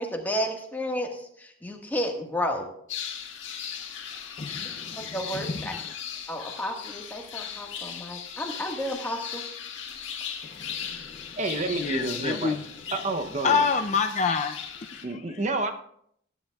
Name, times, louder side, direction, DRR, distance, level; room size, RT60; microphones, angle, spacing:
voice 1, 0.0-2.7 5.1-5.7 6.3-9.4, equal, 10° left, 1.5 m, -32 dB
sound 1, 2.9-15.1, left 8 dB, 70° left, 1.7 m, -38 dB
voice 2, 4.4-5.9 10.5-11.3 11.7-12.6 13.4-14.6, left 5 dB, 35° left, 0.5 m, -28 dB
voice 3, 11.4-12.6 12.9-13.7 15.0-15.7, right 2 dB, 35° right, 0.7 m, -29 dB
19.0 x 10.5 x 2.3 m
head